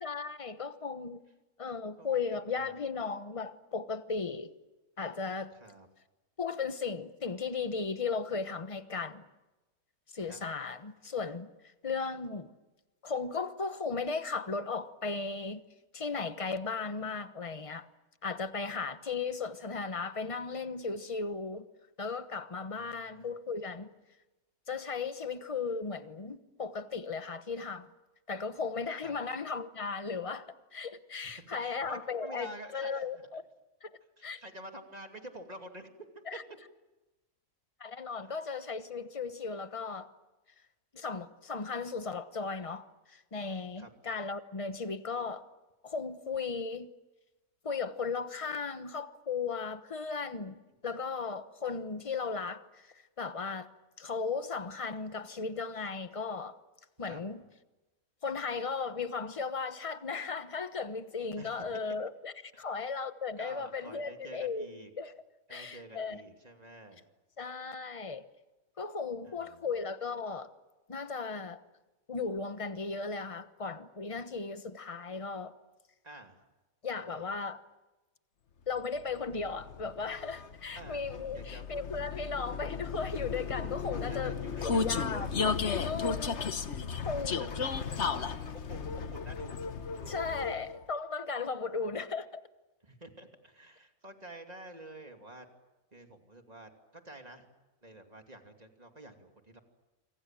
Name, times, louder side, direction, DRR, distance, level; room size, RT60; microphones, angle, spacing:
voice 1, 0.0-1.2 1.6-4.5 5.0-5.5 6.4-9.2 10.1-11.5 11.8-12.5 13.0-15.6 15.9-17.9 18.2-21.7 22.0-23.9 24.7-27.9 28.3-30.5 30.7-33.4 33.8-34.4 36.3-36.4 37.8-40.1 40.9-45.5 45.8-46.9 47.6-53.7 54.0-56.6 57.0-57.4 58.2-64.7 65.0-65.1 65.5-66.2 67.4-68.3 68.8-70.5 70.9-71.6 72.1-75.6 76.8-77.6 78.7-84.4 84.6-85.3 85.7-86.8 87.0-87.4 90.1-92.4, left 4 dB, 25° left, 1.1 m, -36 dB
voice 2, 22.7-23.3 29.0-29.2 31.2-33.3 34.2-35.9 36.1-36.2 43.8-43.9 57.0-57.2 61.3-61.8 62.5-62.7 63.4-64.9 65.5-67.0 69.2-69.7 76.0-76.4 77.1-77.2 80.7-81.0 81.3-81.7 84.1-85.2 87.2-89.6 89.9-90.7 91.7-91.9 92.8-95.4 95.9-97.5 97.8-99.6, right 1 dB, 25° right, 2.8 m, -49 dB
Vehicle, 79.0-90.8, left 5 dB, 50° left, 1.4 m, -35 dB
28.5 x 25.0 x 7.6 m
omnidirectional pair, 1.5 m